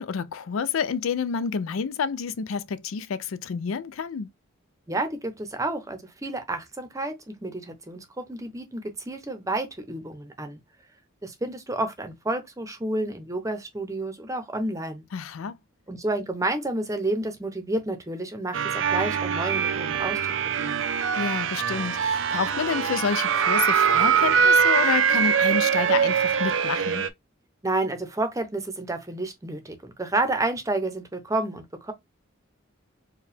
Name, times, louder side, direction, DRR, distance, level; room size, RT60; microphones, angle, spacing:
voice 1, 0.0-4.3 15.1-15.6 21.2-27.0, left 6 dB, 85° left, 0.4 m, -29 dB
voice 2, 4.9-10.6 11.2-15.0 15.9-20.2 20.6-20.9 27.6-31.9, right 2 dB, 15° right, 0.7 m, -30 dB
sound 1, 18.5-27.1, right 7 dB, 65° right, 0.5 m, -23 dB
4.6 x 2.2 x 3.4 m
head